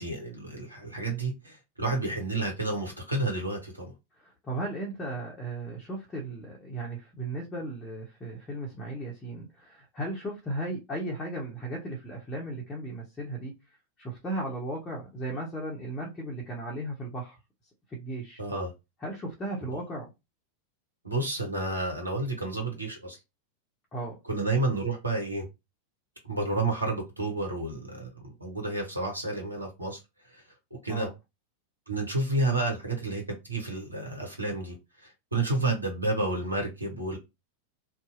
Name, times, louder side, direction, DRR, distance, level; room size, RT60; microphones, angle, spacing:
voice 1, 0.0-3.9 18.4-18.7 19.7-19.8 21.0-23.2 24.2-25.5 26.2-28.1 28.4-30.0 30.3-30.4 30.8-31.1 31.9-37.2, right 2 dB, 85° right, 0.9 m, -30 dB
voice 2, 4.2-13.5 14.0-17.4 17.9-18.4 19.0-20.1 23.9-24.2 30.9-31.1, right 1 dB, 20° left, 0.9 m, -36 dB
2.7 x 2.3 x 2.5 m
figure-of-eight pair, 90°, 0 cm